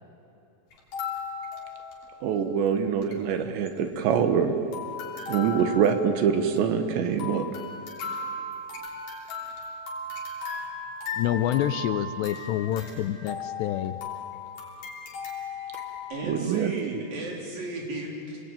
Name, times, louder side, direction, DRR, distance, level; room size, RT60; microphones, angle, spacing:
sound 1, 0.7-2.4 2.7-2.8 2.9-3.2 3.7-4.4 4.7-16.1, left 4 dB, 55° left, 4.7 m, -37 dB
voice 1, 2.2-4.5 5.3-7.5 16.2-16.7, right 7 dB, 75° right, 7 dB, 3.5 m, -24 dB
voice 2, 11.1-14.0, left 12 dB, 80° left, 11 dB, 2.7 m, -27 dB
voice 3, 16.1-18.4, right 2 dB, 50° right, -1 dB, 5.1 m, -34 dB
27.0 x 20.0 x 9.2 m, 2.8 s
omnidirectional pair, 5.3 m